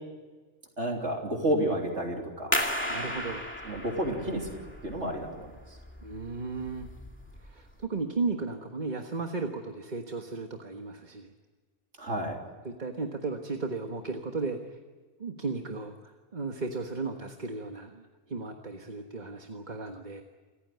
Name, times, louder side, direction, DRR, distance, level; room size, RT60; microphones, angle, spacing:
voice 1, 0.8-2.5 3.6-5.5 12.0-12.4, right 1 dB, 55° right, 1 dB, 3.6 m, -31 dB
sound 1, 2.5-7.9, equal, 10° left, 2.2 m, -35 dB
voice 2, 2.9-3.5 6.0-6.9 7.4-11.3 12.6-14.8 15.2-20.2, right 3 dB, 35° right, 4 dB, 1.5 m, -35 dB
28.5 x 15.0 x 9.4 m, 1.4 s
omnidirectional pair, 1.4 m